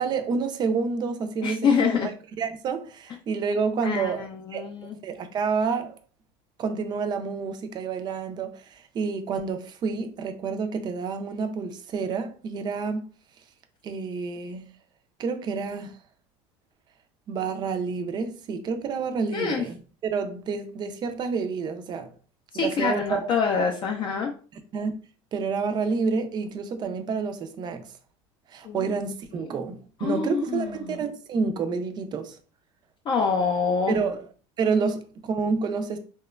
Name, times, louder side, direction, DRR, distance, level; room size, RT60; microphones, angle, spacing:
voice 1, 0.0-2.1 2.4-4.6 5.0-6.0 6.6-13.0 13.8-14.7 15.2-16.0 17.3-19.8 20.0-22.1 22.5-23.3 24.2-24.3 24.7-24.9 25.3-27.9 28.5-32.4 33.9-34.2 34.6-36.0, right 5 dB, 35° right, 0.4 m, -29 dB
voice 2, 1.4-2.1 3.8-5.0 19.3-19.6 22.5-24.3 28.6-28.9 30.0-31.0 33.1-34.0, left 5 dB, 35° left, 0.4 m, -26 dB
2.8 x 2.2 x 2.3 m
supercardioid pair, 115°, 13 cm